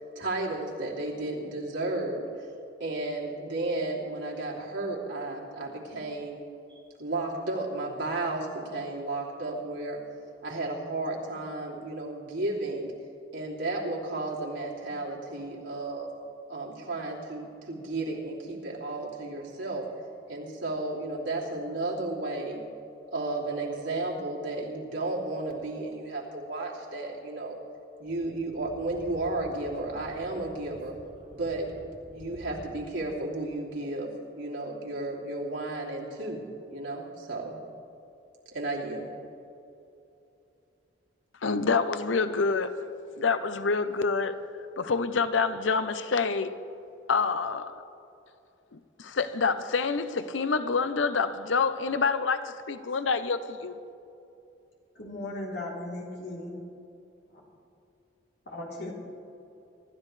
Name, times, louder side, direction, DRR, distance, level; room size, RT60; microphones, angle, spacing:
voice 1, 0.1-2.3 2.8-6.4 6.7-10.0 10.4-12.9 13.3-16.1 16.5-19.9 20.3-22.6 23.1-27.6 28.0-31.0 31.3-31.8 32.1-36.4 36.7-37.6 38.5-39.1, right 2 dB, 90° right, 2.9 m, -33 dB
Speech / Wind, 28.0-32.9, equal, 50° right, 4.1 m, -50 dB
voice 2, 41.4-42.8 43.2-44.4 44.8-46.6 47.1-47.8 48.7-53.7, left 4 dB, 90° left, 0.7 m, -27 dB
voice 3, 55.0-56.6 57.3-57.4 58.5-58.9, left 1 dB, 60° left, 3.5 m, -37 dB
25.5 x 12.5 x 3.3 m
head